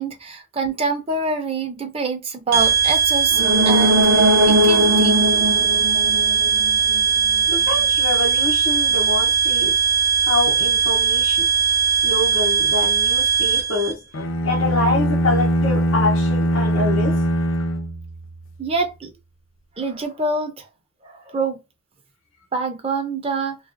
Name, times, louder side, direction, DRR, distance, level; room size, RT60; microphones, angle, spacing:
voice 1, 0.0-5.2 18.6-19.1 19.8-20.7 21.0-21.6 22.5-23.6, right 3 dB, 30° right, 0.5 m, -26 dB
sound 1, 2.5-13.9, right 7 dB, 50° right, 0.8 m, -19 dB
sound 2, 3.3-7.0 7.3-7.4, equal, 80° right, 0.6 m, -19 dB
voice 2, 7.5-9.8 10.2-11.5 12.0-14.0 14.4-17.2, left 2 dB, 85° left, 0.8 m, -25 dB
sound 3, 14.1-18.5, equal, 70° left, 0.4 m, -21 dB
2.6 x 2.4 x 2.4 m
head